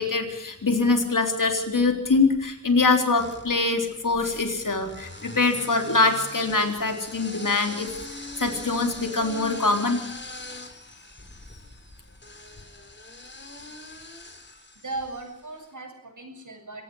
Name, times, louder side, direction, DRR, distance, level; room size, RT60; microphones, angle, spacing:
voice 1, 0.0-10.0, left 3 dB, 85° left, 5 dB, 3.8 m, -24 dB
sound 1, 1.8-2.4 3.2-15.5, left 2 dB, 35° left, 3.8 m, -42 dB
voice 2, 14.8-16.8, right 2 dB, 75° right, 4 dB, 7.4 m, -38 dB
27.0 x 17.5 x 6.4 m, 0.79 s
wide cardioid pair, 70°, 31 cm